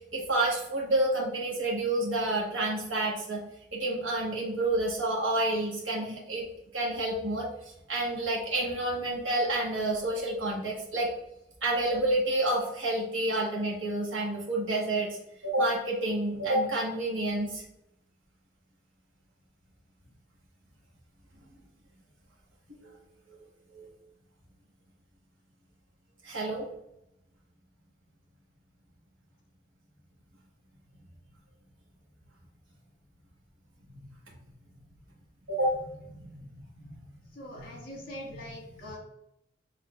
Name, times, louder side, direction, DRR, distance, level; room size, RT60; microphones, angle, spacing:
voice 1, 0.1-3.4 3.7-6.4 6.7-7.5 7.9-11.1 11.6-15.1 15.4-17.6 23.7-23.9 26.2-26.7 35.5-35.7 36.1-36.5 36.8-36.9, right 1 dB, 75° right, -3 dB, 1.2 m, -29 dB
voice 2, 37.3-39.0, left 1 dB, 50° left, -2 dB, 1.6 m, -42 dB
5.9 x 3.6 x 2.3 m, 0.80 s
head